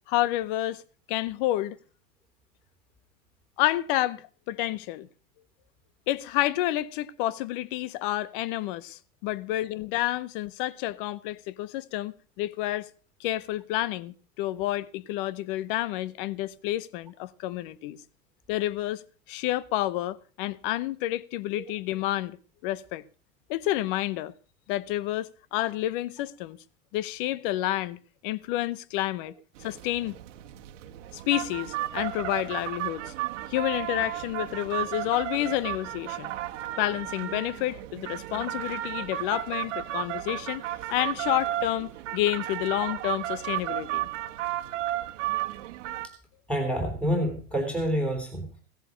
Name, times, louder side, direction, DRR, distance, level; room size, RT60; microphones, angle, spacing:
voice 1, 0.1-0.8 1.1-1.8 3.6-5.1 6.1-12.9 13.2-18.0 18.5-19.0 19.3-22.4 22.6-23.0 23.5-24.3 24.7-26.6 26.9-29.3 29.6-30.2 31.1-33.1 33.5-36.3 36.8-40.6 40.9-44.1, left 15 dB, 40° left, 0.8 m, -29 dB
sound 1, 29.6-46.1, right 14 dB, 55° right, 1.5 m, -34 dB
voice 2, 46.5-48.5, equal, 5° left, 3.2 m, -28 dB
16.5 x 10.5 x 5.1 m
hypercardioid pair, 135°, 43 cm